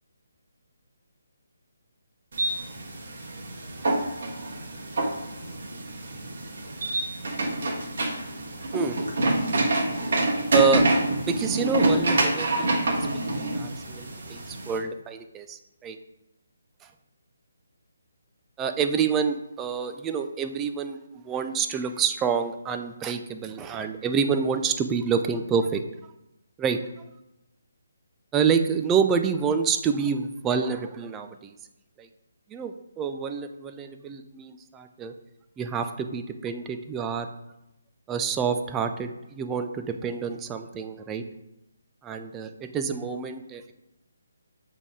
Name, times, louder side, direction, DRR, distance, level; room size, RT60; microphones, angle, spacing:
sound 1, 2.3-14.8, right 2 dB, 50° right, 1.5 m, -27 dB
voice 1, 10.5-10.8 11.2-13.0 13.3-16.0 18.6-25.8 26.6-26.8 28.3-31.6 32.0-32.1 32.5-35.1 35.6-37.3 38.1-41.2 42.0-43.7, right 6 dB, 15° right, 7 dB, 0.4 m, -27 dB
8.1 x 3.5 x 3.6 m, 0.90 s
figure-of-eight pair, 145°, 0 cm